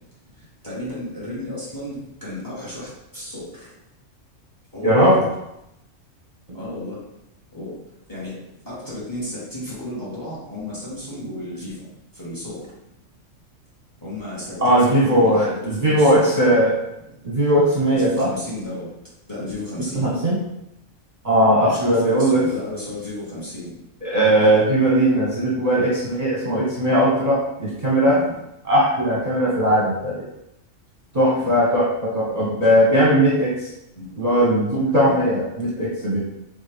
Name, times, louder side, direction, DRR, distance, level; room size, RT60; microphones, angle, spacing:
voice 1, 0.6-3.7 4.7-5.2 6.5-7.0 7.5-7.7 8.1-8.3 8.7-11.8 12.2-12.7 14.0-16.6 17.9-18.9 19.3-20.1 21.7-23.7 28.1-28.4 31.4-31.6 34.0-34.1 35.0-35.3, left 1 dB, 15° left, -7 dB, 1.7 m, -33 dB
voice 2, 4.8-5.2 14.6-16.7 17.2-18.3 19.9-20.4 21.2-22.4 24.0-28.2 28.6-30.1 31.1-33.5 34.2-36.2, equal, 35° right, -7 dB, 0.9 m, -18 dB
4.2 x 3.7 x 3.4 m, 0.86 s
omnidirectional pair, 1.3 m